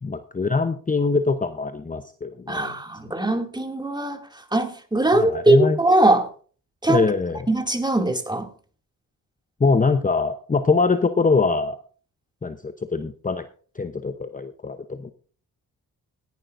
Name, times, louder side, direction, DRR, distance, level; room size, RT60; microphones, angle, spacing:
voice 1, 0.0-2.7 5.1-5.8 6.9-7.5 9.6-11.8 12.4-13.4 13.7-15.1, left 4 dB, 20° left, 9 dB, 0.8 m, -23 dB
voice 2, 2.5-4.2 4.5-6.3 6.8-7.1 7.5-8.5, right 2 dB, 10° right, 4 dB, 2.4 m, -21 dB
18.0 x 10.5 x 2.6 m, 0.42 s
cardioid pair, 60°, 37 cm